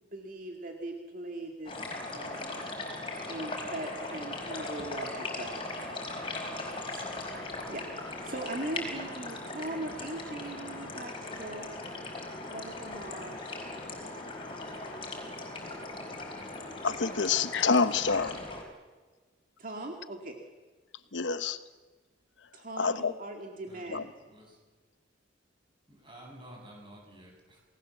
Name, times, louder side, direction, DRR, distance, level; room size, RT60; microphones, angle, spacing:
voice 1, 0.1-1.8 2.1-2.7 3.3-5.6 6.4-11.7 12.5-13.4 19.6-20.4 22.5-24.1, right 2 dB, 45° right, 2.1 m, -40 dB
sound 1, 1.6-18.6, left 2 dB, 30° left, 4.9 m, -39 dB
voice 2, 16.8-18.4 21.1-21.6 22.8-23.1 23.9-24.0, left 5 dB, 75° left, 1.0 m, -27 dB
voice 3, 23.7-24.0 24.3-24.6 25.9-27.6, right 1 dB, 25° right, 7.9 m, -51 dB
28.5 x 19.5 x 7.4 m
head